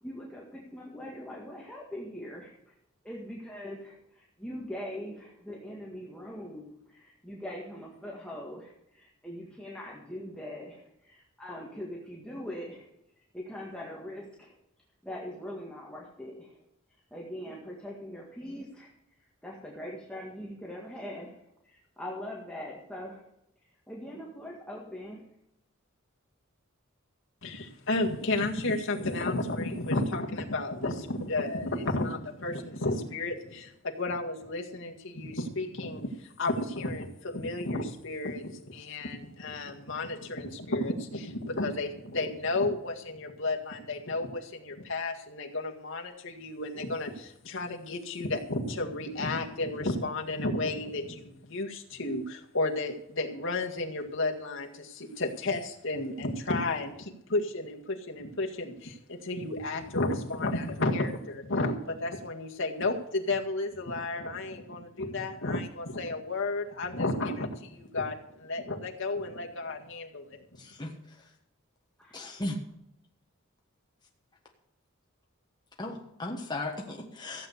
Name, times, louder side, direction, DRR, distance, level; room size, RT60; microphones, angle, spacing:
voice 1, 0.0-2.7 3.0-12.9 13.3-14.5 15.0-16.6 17.1-18.9 19.4-21.3 21.6-23.2 23.9-25.2 72.0-72.2, left 1 dB, 5° left, -3 dB, 1.9 m, -42 dB
voice 2, 27.4-70.4, left 2 dB, 65° left, 1 dB, 1.9 m, -32 dB
voice 3, 70.6-70.9 72.1-72.6 75.8-77.5, left 2 dB, 20° left, 0 dB, 1.4 m, -36 dB
15.0 x 8.1 x 6.6 m, 0.80 s
head